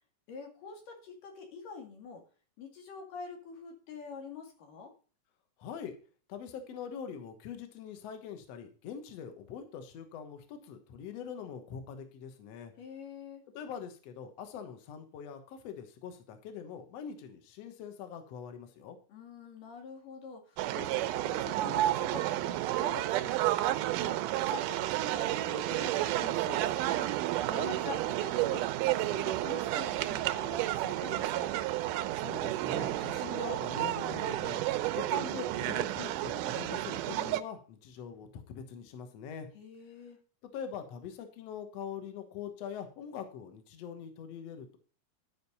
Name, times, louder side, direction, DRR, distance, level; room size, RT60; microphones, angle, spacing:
voice 1, 0.3-2.2 2.6-4.9 12.8-13.4 19.1-24.2 24.5-27.1 27.5-31.5 39.5-40.2, left 5 dB, 90° left, 3 dB, 3.8 m, -46 dB
voice 2, 5.6-6.0 6.3-12.7 13.5-19.0 32.1-39.5 40.5-44.8, left 7 dB, 60° left, 7 dB, 2.1 m, -43 dB
sound 1, 20.6-37.4, right 15 dB, 85° right, 2.2 m, -31 dB
12.0 x 5.2 x 5.4 m, 0.38 s
omnidirectional pair, 3.6 m